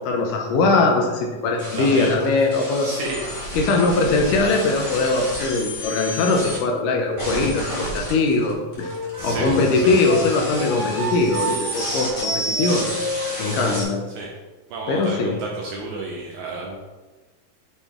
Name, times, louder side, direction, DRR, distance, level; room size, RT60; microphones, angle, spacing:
voice 1, 0.0-2.9 3.6-8.9 9.2-12.9 13.4-14.0 14.9-15.4, left 3 dB, 80° left, 2 dB, 2.1 m, -21 dB
sound 1, 1.6-6.6 7.2-13.8, equal, 25° left, 1.0 m, -31 dB
voice 2, 1.8-2.5 2.8-3.2 9.2-10.1 14.2-14.3 14.7-16.8, right 2 dB, 75° right, -2 dB, 1.8 m, -31 dB
Wind instrument woodwind instrument, 8.8-13.8, right 1 dB, 35° right, 0.7 m, -31 dB
6.8 x 4.1 x 3.6 m, 1.2 s
omnidirectional pair, 4.0 m